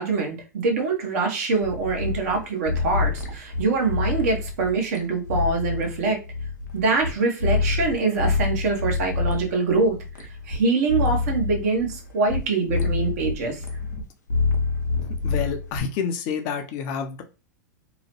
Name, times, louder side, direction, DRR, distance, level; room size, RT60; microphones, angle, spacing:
voice 1, 0.0-6.2 6.7-13.6, right 3 dB, 55° right, 2 dB, 0.9 m, -24 dB
sound 1, 1.6-7.1 7.4-10.6 10.9-12.4 12.7-14.0 14.3-15.8, left 4 dB, 80° left, 0.7 m, -27 dB
voice 2, 15.2-17.2, left 6 dB, 40° left, 5 dB, 0.5 m, -28 dB
2.9 x 2.1 x 3.0 m, 0.31 s
figure-of-eight pair, 100°, 10 cm